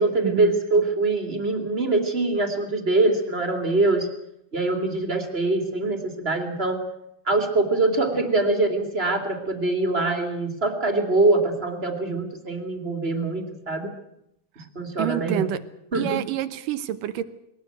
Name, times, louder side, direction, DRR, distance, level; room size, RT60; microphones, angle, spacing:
voice 1, 0.0-4.1 4.5-6.8 7.2-13.9 14.6-15.5 15.9-16.2, right 2 dB, 20° right, 4 dB, 2.3 m, -23 dB
voice 2, 15.0-15.6 15.9-17.2, right 12 dB, 75° right, 12 dB, 2.6 m, -27 dB
21.0 x 18.0 x 8.0 m, 0.80 s
omnidirectional pair, 3.9 m